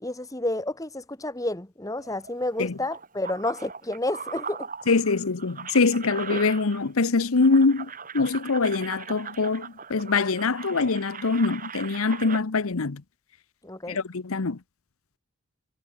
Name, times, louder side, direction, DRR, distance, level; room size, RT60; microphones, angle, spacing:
voice 1, 0.0-4.7 13.6-14.0, left 1 dB, 15° left, 1.2 m, -30 dB
sound 1, 2.0-7.1 7.3-12.4, right 5 dB, 35° right, 5.7 m, -39 dB
voice 2, 4.9-13.0 13.9-14.6, left 4 dB, 75° left, 0.9 m, -24 dB
head